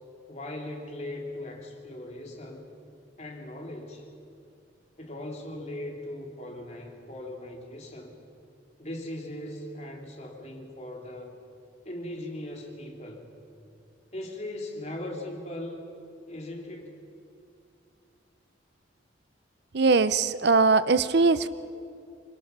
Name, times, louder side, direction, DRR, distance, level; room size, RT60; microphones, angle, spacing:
voice 1, 0.3-2.7 3.2-4.1 5.0-8.2 8.8-11.4 11.9-13.3 14.1-15.8 16.3-17.0, left 1 dB, 35° left, 0 dB, 3.5 m, -39 dB
voice 2, 19.7-21.5, right 4 dB, 55° right, 14 dB, 0.6 m, -21 dB
26.5 x 24.5 x 6.0 m, 2.5 s
head